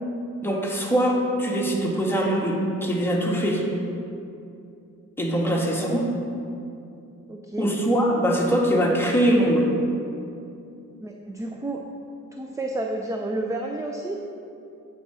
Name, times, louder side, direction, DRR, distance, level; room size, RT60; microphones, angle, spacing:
voice 1, 0.4-3.6 5.2-6.0 7.6-9.7, equal, 5° left, -3 dB, 1.6 m, -22 dB
voice 2, 5.4-6.0 7.3-7.7 11.0-11.8 12.3-14.2, right 2 dB, 10° right, 1 dB, 0.6 m, -31 dB
8.3 x 4.9 x 5.6 m, 2.6 s
cardioid pair, 80°, 33 cm